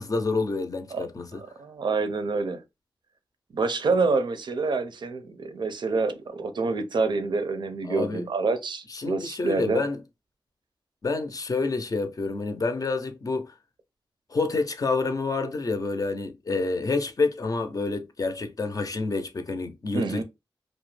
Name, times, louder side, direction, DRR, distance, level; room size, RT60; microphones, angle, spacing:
voice 1, 0.0-1.4 7.8-8.2 8.9-10.0 11.0-13.5 14.3-20.2, left 3 dB, 45° left, 0.5 m, -28 dB
voice 2, 1.3-2.6 3.5-9.8 19.9-20.2, right 4 dB, 65° right, 0.5 m, -27 dB
2.4 x 2.1 x 3.1 m
cardioid pair, 70°, 9 cm